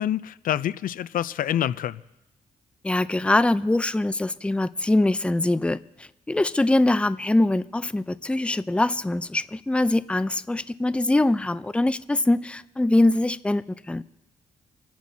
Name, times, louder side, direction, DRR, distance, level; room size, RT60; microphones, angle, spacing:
voice 1, 0.0-2.0, left 11 dB, 75° left, 16 dB, 0.5 m, -27 dB
voice 2, 2.8-14.0, left 2 dB, 10° left, 15 dB, 0.5 m, -23 dB
27.5 x 10.5 x 2.8 m, 0.97 s
cardioid pair, 65°, 14 cm